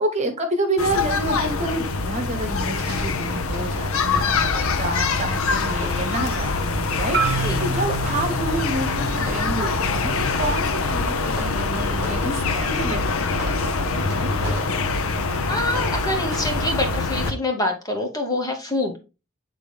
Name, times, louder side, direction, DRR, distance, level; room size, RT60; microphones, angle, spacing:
voice 1, 0.0-14.5, right 1 dB, 30° right, 5 dB, 1.2 m, -29 dB
sound 1, 0.8-17.3, left 4 dB, 75° left, 0.7 m, -24 dB
sound 2, 2.6-17.3, equal, 5° right, 2.9 m, -41 dB
Marimba xylophone, 7.1-11.3, right 4 dB, 55° right, 0.8 m, -30 dB
voice 2, 15.5-19.0, left 1 dB, 15° left, 3 dB, 1.1 m, -26 dB
8.3 x 3.9 x 3.4 m, 0.30 s
head